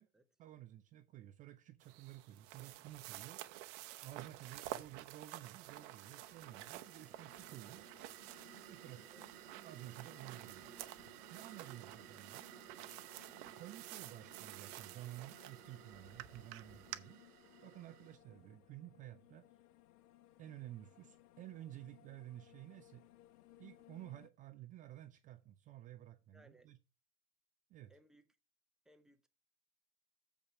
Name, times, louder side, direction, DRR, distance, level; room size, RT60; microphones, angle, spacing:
voice 1, 0.4-3.4 4.0-7.9 8.6-9.1 9.6-10.8 11.3-12.5 13.6-17.2 17.6-19.5 20.4-23.0 23.6-26.8 27.7-27.9, right 14 dB, 20° right, 0.3 m, -53 dB
sound 1, 1.8-17.0, right 15 dB, 50° right, 0.9 m, -51 dB
sound 2, 4.8-18.2, right 15 dB, 75° right, 0.6 m, -58 dB
sound 3, 5.6-24.3, left 14 dB, 75° left, 0.7 m, -64 dB
voice 2, 26.3-26.7 27.9-28.3 28.8-29.3, right 1 dB, ahead, 0.8 m, -65 dB
7.3 x 5.2 x 5.8 m
hypercardioid pair, 100°, 46 cm